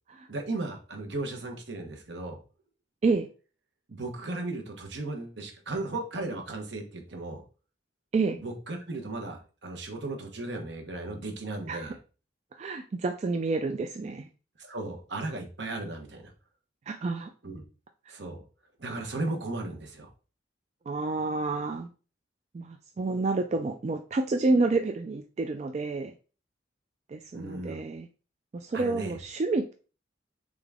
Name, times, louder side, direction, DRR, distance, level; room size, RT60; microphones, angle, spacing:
voice 1, 0.3-2.4 3.9-7.4 8.4-12.0 14.6-16.3 17.4-17.6 18.1-18.4 18.8-20.1 27.3-27.8 28.7-29.2, right 2 dB, 70° right, 3 dB, 1.0 m, -36 dB
voice 2, 12.5-14.3 16.9-17.3 20.9-21.9 22.5-26.1 27.1-28.1 28.5-29.7, right 3 dB, 35° right, 5 dB, 0.3 m, -29 dB
3.8 x 3.6 x 3.5 m, 0.36 s
head